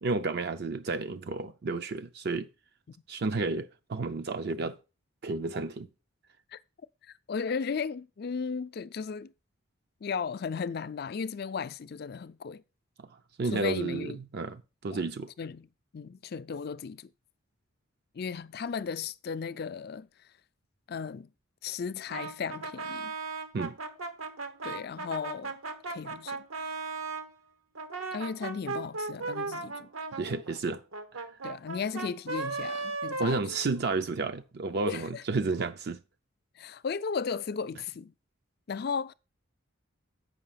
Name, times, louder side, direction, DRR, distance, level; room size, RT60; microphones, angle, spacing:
voice 1, 0.0-2.5 3.1-4.8 5.2-5.9 13.0-13.1 13.4-15.3 23.5-23.8 30.2-30.8 31.1-31.2 33.2-36.0, right 3 dB, 50° right, 0.4 m, -31 dB
voice 2, 7.0-9.3 10.0-12.6 13.5-14.2 14.9-15.0 15.4-15.7 15.9-17.1 18.1-20.1 20.9-21.3 21.6-23.1 24.6-25.6 25.9-26.4 28.1-29.9 31.4-33.4 34.9-35.2 36.6-38.1 38.7-39.1, left 5 dB, 50° left, 0.4 m, -35 dB
Brass instrument, 22.1-27.3 27.7-34.1, right 3 dB, 85° right, 1.1 m, -37 dB
7.6 x 5.5 x 5.6 m
head